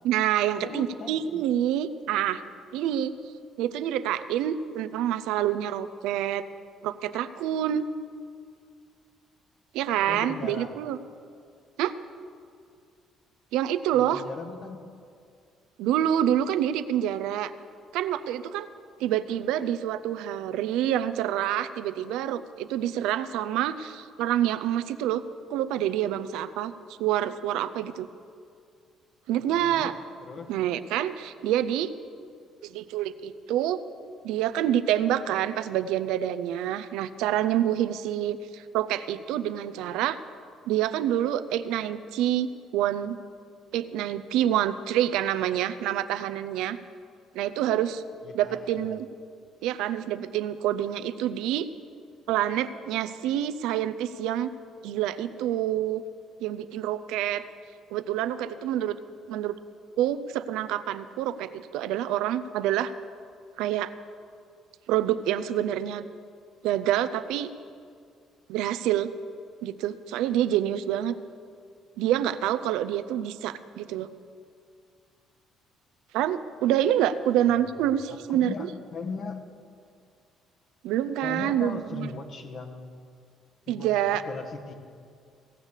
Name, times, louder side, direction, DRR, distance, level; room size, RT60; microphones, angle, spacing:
voice 1, 0.0-2.4 2.7-3.1 3.6-6.4 6.8-7.8 9.7-11.0 11.8-11.9 13.5-14.2 15.8-17.5 17.9-18.7 19.0-25.2 25.5-26.7 27.0-28.1 29.3-29.9 30.5-31.9 32.6-33.8 34.2-40.2 40.7-42.5 42.7-43.2 43.7-46.8 47.3-48.0 48.3-49.1 49.6-51.7 52.3-54.5 54.8-56.0 56.4-57.4 57.9-59.0 59.3-59.5 60.0-62.9 63.6-63.9 64.9-66.1 66.6-67.5 68.5-69.1 69.6-71.2 72.0-74.1 76.1-78.5 80.8-82.1 83.7-84.2, right 11 dB, 85° right, 12 dB, 0.5 m, -27 dB
voice 2, 0.6-1.4 10.1-10.8 13.9-14.9 29.4-29.9 30.2-30.5 48.2-49.0 77.8-77.9 78.3-79.4 81.2-82.9 83.7-84.7, left 4 dB, 55° left, 4 dB, 1.4 m, -38 dB
17.0 x 6.5 x 7.2 m, 2.3 s
supercardioid pair, 85°, 0 cm